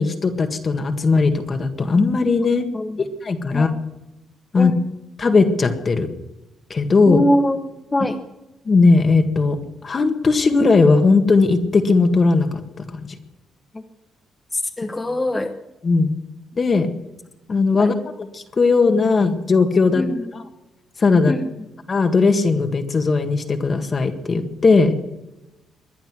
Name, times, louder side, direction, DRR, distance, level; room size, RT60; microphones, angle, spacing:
voice 1, 0.0-2.6 3.2-3.7 4.5-4.7 5.2-6.1 6.7-7.2 8.7-9.6 9.8-13.1 15.8-16.2 16.6-16.9 17.5-17.9 18.3-20.0 21.0-21.3 21.9-25.0, left 4 dB, 40° left, 6 dB, 1.8 m, -17 dB
voice 2, 7.1-7.6 7.9-8.2 13.7-13.8 14.5-15.5 17.8-17.9 19.9-20.4 21.3-21.5, left 1 dB, 20° left, 3 dB, 1.1 m, -22 dB
22.0 x 10.5 x 6.2 m, 0.99 s
cardioid pair, 90°, 0 cm